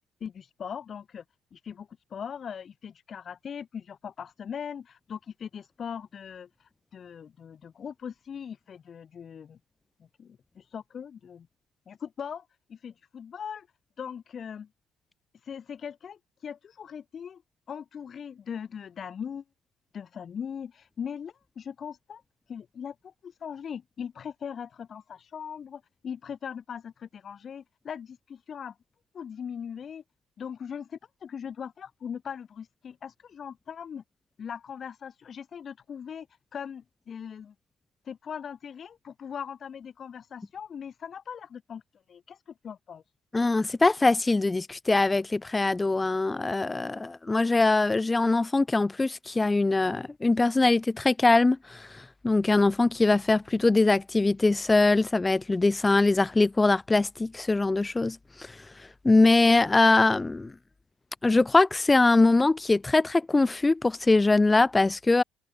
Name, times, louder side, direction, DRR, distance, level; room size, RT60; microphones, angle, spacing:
voice 1, 0.2-1.2 1.5-6.5 6.9-9.6 10.0-11.5 11.9-13.7 14.0-14.7 15.4-17.4 17.7-19.4 19.9-22.2 22.5-28.8 29.1-30.0 30.4-34.0 34.4-36.3 36.5-37.5 38.1-41.8 42.1-43.0, left 7 dB, 35° left, 7.1 m, -40 dB
voice 2, 43.3-58.6 59.0-60.5 61.2-65.2, left 3 dB, 15° left, 0.4 m, -22 dB
cardioid pair, 125°, 0 cm